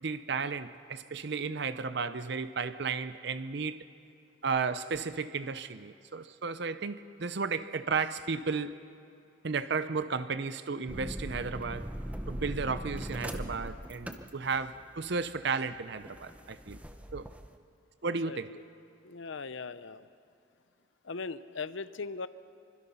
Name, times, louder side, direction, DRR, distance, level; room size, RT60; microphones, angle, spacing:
voice 1, 0.0-3.8 4.4-8.8 9.4-11.9 12.3-16.8 17.1-17.3 18.0-18.6, right 5 dB, 55° right, 13 dB, 0.6 m, -34 dB
sound 1, 10.9-17.5, equal, 5° right, 0.7 m, -40 dB
voice 2, 18.3-18.6 19.0-20.1 21.0-22.3, left 4 dB, 70° left, 14 dB, 0.7 m, -39 dB
25.5 x 24.5 x 5.7 m, 2.5 s
head